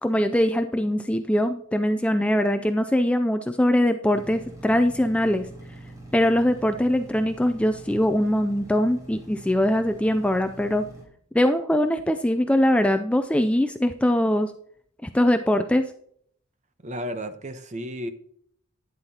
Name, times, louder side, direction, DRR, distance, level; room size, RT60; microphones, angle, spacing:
voice 1, 0.0-5.5 6.1-10.9 11.3-14.5 15.0-15.9, left 1 dB, 5° left, 8 dB, 0.3 m, -22 dB
sound 1, 4.1-11.0, right 1 dB, 15° right, 3.2 m, -44 dB
voice 2, 16.8-18.1, equal, 35° right, 9 dB, 0.9 m, -33 dB
11.5 x 9.7 x 2.8 m, 0.65 s
head